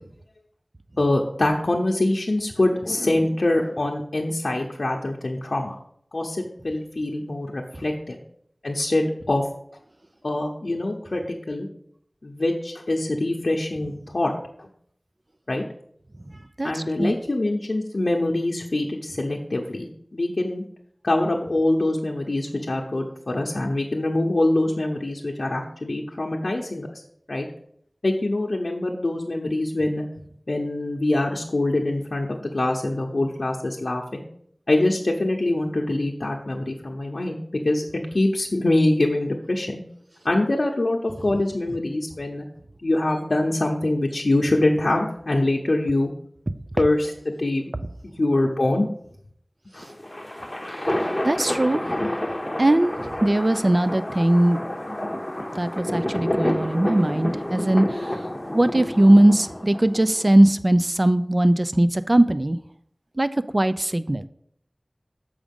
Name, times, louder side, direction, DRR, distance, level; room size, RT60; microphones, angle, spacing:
voice 1, 1.0-5.8 6.1-8.2 8.6-9.4 10.2-11.7 12.2-14.3 14.6-14.7 15.5-15.6 16.6-20.6 21.0-26.9 27.3-27.5 28.0-30.0 30.5-34.2 34.7-37.8 38.1-39.8 40.2-42.5 42.8-46.1 46.8-47.7 48.0-48.9 49.7-49.9, left 2 dB, 85° left, -1 dB, 0.7 m, -24 dB
voice 2, 16.6-17.1 51.2-51.8 52.6-54.6 55.6-58.1 58.5-62.6 63.2-64.2, right 1 dB, 45° right, 12 dB, 0.4 m, -19 dB
sound 1, 49.8-60.3, left 1 dB, 25° left, 0.9 m, -29 dB
7.3 x 5.0 x 5.2 m, 0.68 s
wide cardioid pair, 50°, 0 cm